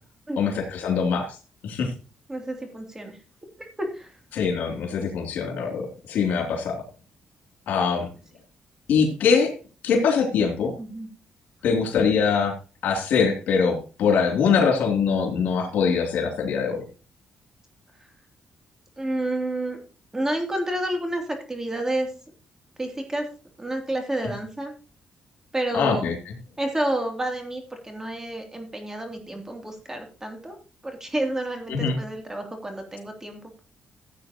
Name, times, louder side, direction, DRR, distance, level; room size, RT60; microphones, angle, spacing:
voice 1, 0.4-1.3 1.6-1.9 4.3-6.8 7.7-8.1 8.9-9.5 9.8-10.7 11.6-12.5 12.8-16.8 25.7-26.1 31.7-32.0, left 6 dB, 85° left, 2 dB, 2.9 m, -23 dB
voice 2, 2.3-3.2 3.8-4.2 10.8-11.1 19.0-19.8 20.1-22.1 22.8-23.3 23.6-24.7 25.5-26.1 26.6-30.6 30.8-33.6, right 1 dB, 15° right, 3 dB, 3.0 m, -30 dB
15.0 x 8.5 x 3.0 m, 0.34 s
cardioid pair, 95°, 3 cm